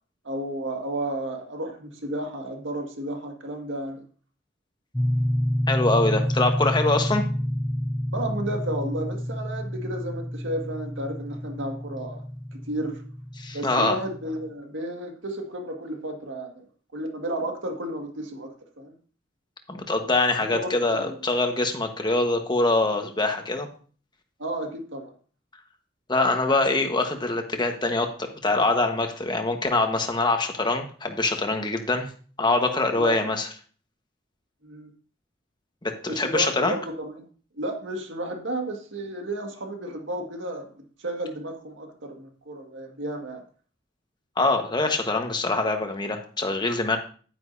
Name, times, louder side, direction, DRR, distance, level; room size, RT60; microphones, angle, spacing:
voice 1, 0.2-4.0 8.1-12.2 12.5-13.0 13.5-16.7 16.9-18.9 20.5-21.2 24.4-25.1 33.0-33.3 34.6-34.9 36.1-37.3 37.5-40.7 41.0-43.4, right 1 dB, 80° right, 3 dB, 1.8 m, -32 dB
sound 1, 4.9-14.5, equal, 5° left, 0.4 m, -29 dB
voice 2, 5.7-7.2 13.4-14.0 19.7-23.7 26.1-32.1 32.4-33.5 35.8-36.8 44.4-47.0, left 2 dB, 25° left, 4 dB, 1.3 m, -24 dB
10.5 x 9.6 x 2.7 m, 0.41 s
head